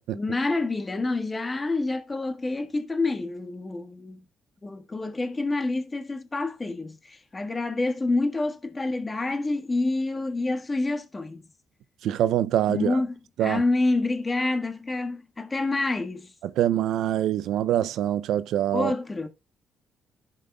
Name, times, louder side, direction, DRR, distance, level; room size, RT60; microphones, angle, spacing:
voice 1, 0.1-4.2 4.6-11.5 12.7-13.1 13.4-16.3 18.7-19.3, left 2 dB, 25° left, 1.5 m, -27 dB
voice 2, 12.0-13.0 13.4-13.6 16.4-18.9, right 11 dB, 80° right, 0.5 m, -24 dB
15.0 x 5.3 x 2.3 m
cardioid pair, 90°, 0 cm